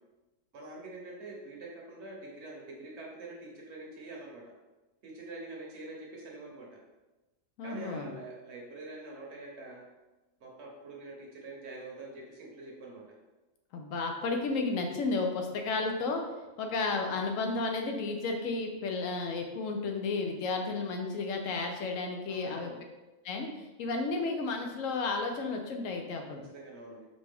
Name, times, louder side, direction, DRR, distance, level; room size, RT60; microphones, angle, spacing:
voice 1, 0.5-4.4 5.0-6.8 7.6-9.8 10.4-13.0 22.3-22.8 26.5-27.1, right 2 dB, 60° right, -2 dB, 1.1 m, -45 dB
voice 2, 7.6-8.1 13.7-16.2 16.6-22.7 23.2-26.4, left 3 dB, 80° left, 3 dB, 1.0 m, -32 dB
5.0 x 2.3 x 3.4 m, 1.1 s
omnidirectional pair, 1.3 m